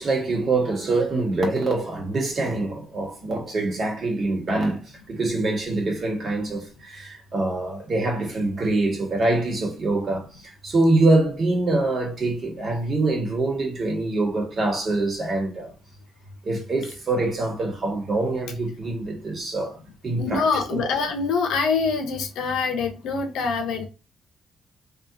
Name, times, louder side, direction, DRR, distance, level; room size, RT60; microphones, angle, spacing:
voice 1, 0.0-4.8 5.1-15.7 16.4-19.8 20.0-20.8, right 2 dB, 40° right, 1.7 m, -24 dB
voice 2, 20.2-23.9, left 5 dB, 80° left, 0.8 m, -25 dB
3.0 x 3.0 x 2.5 m
cardioid pair, 90°, 0 cm